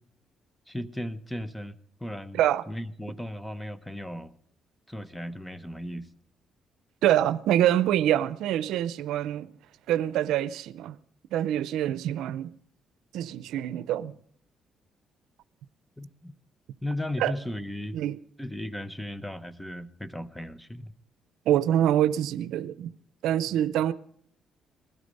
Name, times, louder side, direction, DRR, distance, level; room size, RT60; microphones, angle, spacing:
voice 1, 0.7-2.4 2.7-4.3 4.9-6.1 16.0-16.3 16.8-18.0 18.4-20.9, left 1 dB, 5° left, 1.0 m, -36 dB
voice 2, 7.0-9.5 9.9-11.0 11.3-12.5 13.1-14.2 17.2-17.3 17.9-18.2 21.5-22.9 23.2-23.9, right 11 dB, 85° right, 0.5 m, -25 dB
20.5 x 13.0 x 5.4 m
cardioid pair, 90°, 0 cm